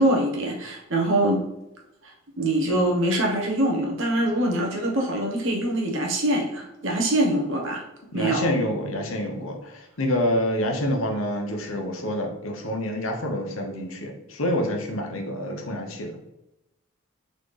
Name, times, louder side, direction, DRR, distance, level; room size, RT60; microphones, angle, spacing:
voice 1, 0.0-1.4 2.0-7.8 8.1-8.5, right 1 dB, 65° right, 0 dB, 1.1 m, -24 dB
voice 2, 8.1-16.3, left 1 dB, 70° left, 2 dB, 0.9 m, -27 dB
4.1 x 3.8 x 3.3 m, 0.92 s
head